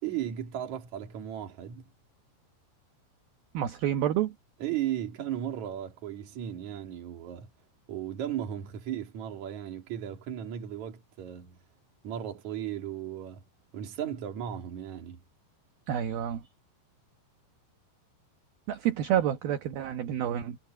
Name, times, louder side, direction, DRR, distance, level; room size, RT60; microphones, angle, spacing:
voice 1, 0.0-1.9 4.6-7.5 7.9-11.6 12.0-13.4 13.7-15.2, right 10 dB, 45° right, 3.0 m, -36 dB
voice 2, 3.5-4.3 15.9-16.5 18.7-20.6, right 10 dB, 65° right, 2.7 m, -29 dB
omnidirectional pair, 5.5 m